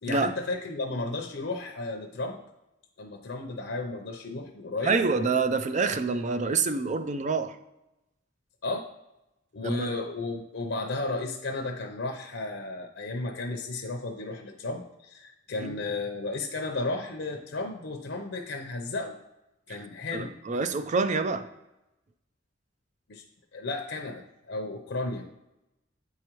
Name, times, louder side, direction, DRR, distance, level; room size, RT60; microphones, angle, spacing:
voice 1, 0.0-2.4 3.0-4.9 8.6-8.9 9.5-19.2 19.7-20.3 23.1-23.2 23.5-24.2 24.5-25.2, left 2 dB, 70° left, 3 dB, 0.6 m, -33 dB
voice 2, 4.8-7.6 9.6-9.9 15.6-15.8 20.1-21.5, right 4 dB, 40° right, 10 dB, 0.4 m, -27 dB
8.2 x 4.8 x 3.0 m, 0.93 s
head